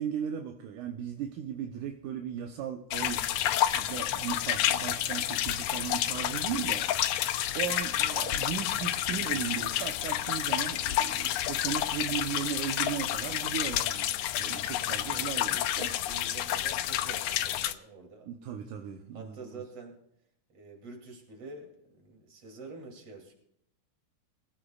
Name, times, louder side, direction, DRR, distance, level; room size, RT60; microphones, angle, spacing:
voice 1, 0.0-3.3 3.7-7.2 7.5-14.1 14.4-15.9 18.3-19.6, right 9 dB, 80° right, 3 dB, 2.3 m, -37 dB
sound 1, 2.9-17.7, left 12 dB, 90° left, 1.4 m, -30 dB
voice 2, 14.4-14.7 15.4-18.3 19.1-20.0 20.5-23.3, right 3 dB, 50° right, 1 dB, 3.7 m, -47 dB
23.5 x 15.5 x 2.4 m, 0.74 s
omnidirectional pair, 3.6 m